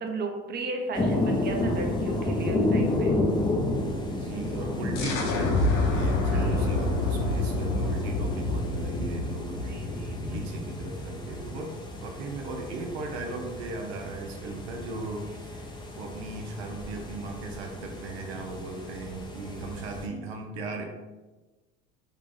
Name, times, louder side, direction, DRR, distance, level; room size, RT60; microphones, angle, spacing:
voice 1, 0.0-3.2 6.3-6.7 9.5-10.5, right 3 dB, 30° right, 2 dB, 0.7 m, -35 dB
sound 1, 0.9-20.1, left 2 dB, 15° left, 0.6 m, -32 dB
voice 2, 4.1-9.8 10.3-11.7 12.0-20.8, right 3 dB, 80° right, 2 dB, 0.7 m, -37 dB
sound 2, 5.0-10.5, left 2 dB, 55° left, 0.8 m, -28 dB
3.2 x 2.5 x 3.6 m, 1.2 s
supercardioid pair, 85°, 31 cm